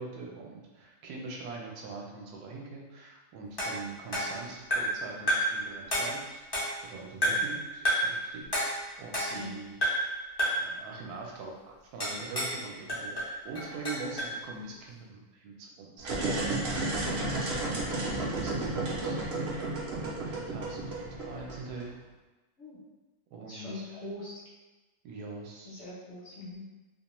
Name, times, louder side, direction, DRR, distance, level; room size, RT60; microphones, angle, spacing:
voice 1, 0.0-6.4 6.8-9.8 10.5-16.5 16.9-19.3 20.0-21.9 23.3-24.0 25.0-25.8, right 3 dB, 80° right, -1 dB, 1.1 m, -43 dB
sound 1, 3.6-5.0 5.3-5.6 5.9-6.9 7.2-7.6 7.8-8.2 8.5-9.5 9.8-10.1 10.4-10.7 12.0-12.6 12.9-14.4, equal, 25° left, 0.5 m, -30 dB
sound 2, 16.0-21.8, right 2 dB, 60° right, 0.6 m, -32 dB
voice 2, 17.2-17.5 22.6-22.8 23.4-24.4 25.7-26.7, left 1 dB, 55° left, -7 dB, 1.0 m, -42 dB
2.7 x 2.2 x 2.9 m, 1.2 s
omnidirectional pair, 1.6 m